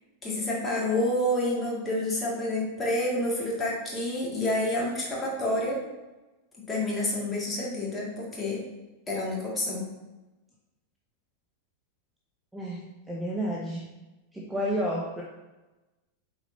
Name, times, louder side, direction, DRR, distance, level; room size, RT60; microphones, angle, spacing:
voice 1, 0.2-5.8 6.7-8.6 9.1-9.9, left 1 dB, 15° left, -4 dB, 2.1 m, -28 dB
voice 2, 12.5-13.9 14.3-15.2, equal, 5° right, -3 dB, 0.8 m, -31 dB
8.2 x 4.5 x 2.7 m, 1.1 s
figure-of-eight pair, 90°, 0 cm